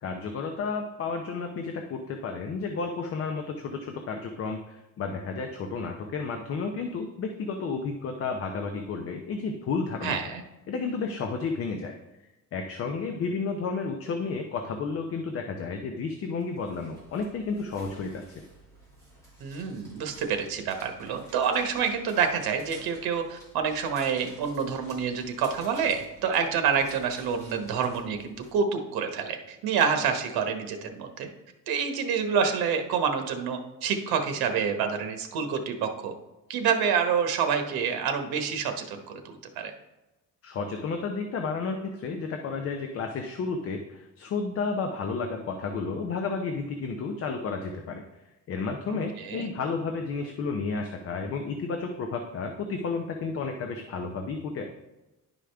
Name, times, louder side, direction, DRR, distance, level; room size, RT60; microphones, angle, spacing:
voice 1, 0.0-10.2 10.7-11.9 12.5-18.2 40.4-48.0 48.5-54.6, left 4 dB, 40° left, 4 dB, 0.6 m, -32 dB
voice 2, 10.0-10.4 19.4-31.3 31.7-36.1 36.5-39.7 48.9-49.5, right 6 dB, 80° right, 6 dB, 1.1 m, -28 dB
sound 1, 16.4-28.5, right 1 dB, 10° left, 2.3 m, -52 dB
10.5 x 4.9 x 3.4 m, 1.0 s
cardioid pair, 175°, 36 cm